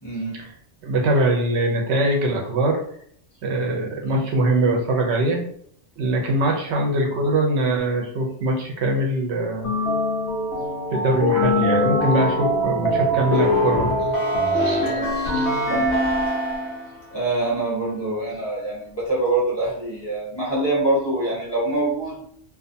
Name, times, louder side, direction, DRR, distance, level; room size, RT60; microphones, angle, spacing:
voice 1, 0.0-0.3 14.8-15.1 15.7-15.9 17.1-22.3, right 2 dB, 25° left, -8 dB, 1.0 m, -25 dB
voice 2, 0.8-2.8 3.4-5.4 6.0-9.7 10.9-13.9 14.5-14.9 15.2-15.5, right 1 dB, 70° right, 1 dB, 0.8 m, -22 dB
sound 1, 9.6-16.9, left 1 dB, 75° left, 0.9 m, -22 dB
2.4 x 2.3 x 2.6 m, 0.62 s
omnidirectional pair, 1.2 m